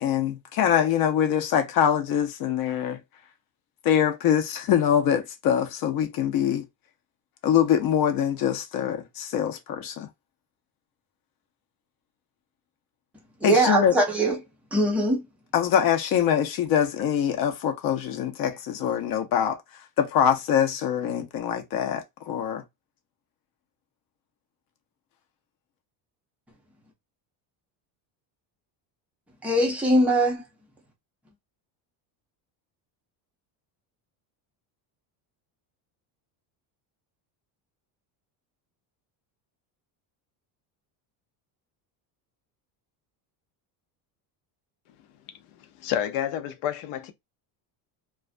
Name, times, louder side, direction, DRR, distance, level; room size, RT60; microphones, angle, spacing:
voice 1, 0.0-3.0 3.8-6.6 7.4-10.1 13.4-13.9 15.5-19.6 20.0-22.6, left 9 dB, 45° left, 0.5 m, -24 dB
voice 2, 13.4-14.4 14.7-15.2 29.4-30.4, right 1 dB, 5° right, 0.4 m, -21 dB
voice 3, 45.5-47.1, left 10 dB, 85° left, 0.7 m, -30 dB
2.3 x 2.2 x 2.4 m
cardioid pair, 155°, 49 cm